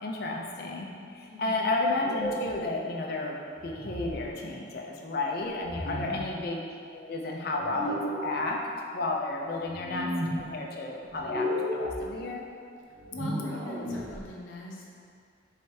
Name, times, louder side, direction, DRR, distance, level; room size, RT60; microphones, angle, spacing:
voice 1, 0.0-8.6 8.9-10.1 10.4-12.4, left 2 dB, 50° left, -1 dB, 0.5 m, -32 dB
voice 2, 1.3-1.6 5.8-6.3 13.1-14.9, left 1 dB, 85° left, -3 dB, 0.7 m, -39 dB
sound 1, 1.9-2.5 3.6-4.2 5.6-6.2 7.6-8.3 9.6-10.4 11.1-12.0 12.9-14.2, equal, 35° right, 0.7 m, -34 dB
4.9 x 3.3 x 2.8 m, 2.3 s
head